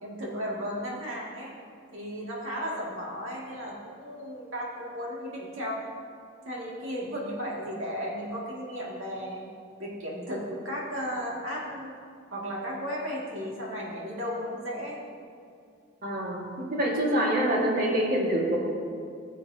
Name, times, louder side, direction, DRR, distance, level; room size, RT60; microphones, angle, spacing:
voice 1, 0.0-1.5 1.9-5.9 6.5-9.4 9.8-11.9 12.3-15.0, equal, 75° right, -4 dB, 2.1 m, -35 dB
voice 2, 16.0-18.6, right 1 dB, 45° right, -3 dB, 1.7 m, -26 dB
15.5 x 7.4 x 2.8 m, 2.3 s
head